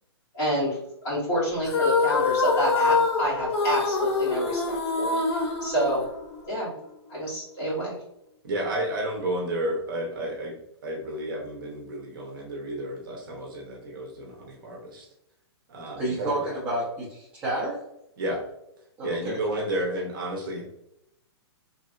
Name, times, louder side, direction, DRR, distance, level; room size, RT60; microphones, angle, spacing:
voice 1, 0.3-0.8 1.0-6.1 6.5-6.7 7.1-8.0, equal, 20° left, -7 dB, 1.3 m, -28 dB
sound 1, 1.6-6.5, left 4 dB, 80° left, 0.6 m, -25 dB
voice 2, 8.4-10.5 10.8-15.1 15.7-16.6 18.2-18.4 19.0-20.6, right 1 dB, 50° right, 0 dB, 0.9 m, -31 dB
voice 3, 16.0-17.8 19.0-19.4, right 1 dB, 15° right, -7 dB, 0.6 m, -30 dB
3.2 x 2.6 x 2.4 m, 0.80 s
hypercardioid pair, 170°, 14 cm